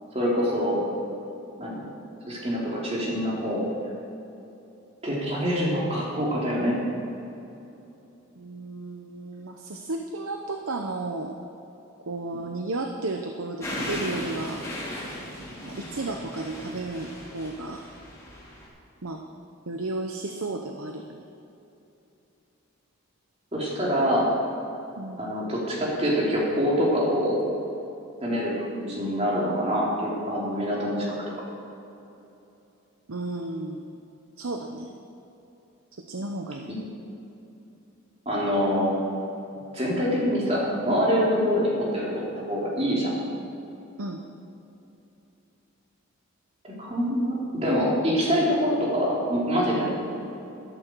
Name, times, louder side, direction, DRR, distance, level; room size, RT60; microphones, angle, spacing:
voice 1, 0.1-0.8 1.6-1.8 2.3-3.7 5.0-6.8 15.6-15.8 23.5-24.3 25.2-27.4 28.2-31.1 38.3-38.9 39.7-43.2 46.6-49.9, equal, 30° right, -5 dB, 3.5 m, -25 dB
voice 2, 8.4-11.3 12.1-14.7 15.7-17.8 19.0-19.2 19.7-21.2 25.0-25.3 28.3-28.4 33.1-33.9 34.4-34.9 36.1-36.7 44.0-44.2, right 2 dB, 85° right, 3 dB, 0.9 m, -33 dB
sound 1, 13.6-18.7, left 1 dB, 15° left, 3.6 m, -36 dB
13.5 x 13.0 x 4.7 m, 2.9 s
head